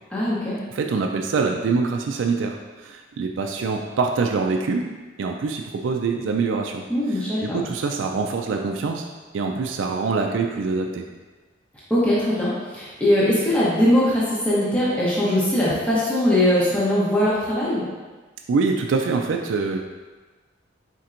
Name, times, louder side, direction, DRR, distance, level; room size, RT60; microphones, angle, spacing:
voice 1, 0.1-0.6 6.9-7.6 11.9-17.8, left 1 dB, 10° left, -9 dB, 0.8 m, -21 dB
voice 2, 0.7-4.9 5.2-6.8 7.1-9.1 9.3-11.0 18.5-19.8, right 4 dB, 90° right, 3 dB, 0.4 m, -24 dB
4.3 x 4.3 x 2.5 m, 1.3 s
head